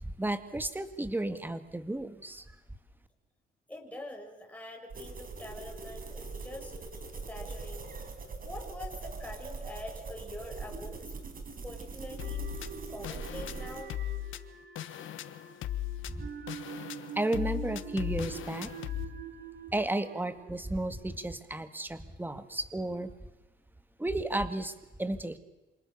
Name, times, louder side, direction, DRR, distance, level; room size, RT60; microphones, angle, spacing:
voice 1, 0.0-2.6 16.1-16.3 17.2-18.7 19.7-23.1 24.0-24.7 25.0-25.4, right 1 dB, 10° right, 10 dB, 2.1 m, -33 dB
voice 2, 3.7-6.7 7.3-7.9 8.4-11.1 11.6-14.0, left 1 dB, 5° left, 0 dB, 7.3 m, -45 dB
sound 1, 4.9-13.8, right 4 dB, 45° right, 5.2 m, -42 dB
sound 2, 12.2-19.0, left 13 dB, 80° left, 1.4 m, -38 dB
sound 3, 12.2-21.4, right 7 dB, 65° right, 2.8 m, -46 dB
27.5 x 27.0 x 6.9 m, 1.1 s
cardioid pair, 90°, 20 cm